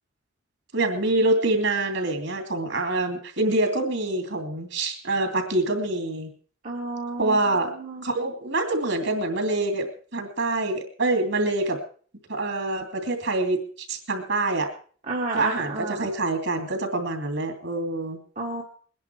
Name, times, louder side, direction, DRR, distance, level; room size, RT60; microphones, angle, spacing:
voice 1, 0.7-6.3 7.2-7.7 8.0-11.8 12.3-14.7 15.3-18.2, right 2 dB, 60° right, 5 dB, 2.9 m, -25 dB
voice 2, 6.6-8.0 15.1-16.1 18.4-18.6, right 2 dB, 35° right, -2 dB, 1.5 m, -31 dB
21.5 x 10.5 x 4.6 m, 0.43 s
head